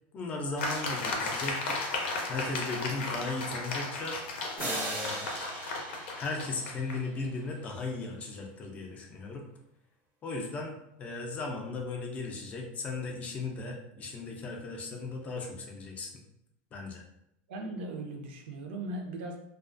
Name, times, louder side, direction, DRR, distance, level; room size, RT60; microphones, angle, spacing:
voice 1, 0.1-1.9 2.3-4.2 4.6-5.2 6.2-9.4 10.2-16.1 16.7-17.0, left 3 dB, 25° left, 1 dB, 0.4 m, -37 dB
sound 1, 0.6-7.0, left 3 dB, 90° left, 0.6 m, -35 dB
sound 2, 4.6-7.3, right 2 dB, 30° right, 0.5 m, -39 dB
voice 2, 17.5-19.4, right 2 dB, 80° right, 2 dB, 0.5 m, -38 dB
2.3 x 2.3 x 2.4 m, 0.80 s
supercardioid pair, 155°, 6 cm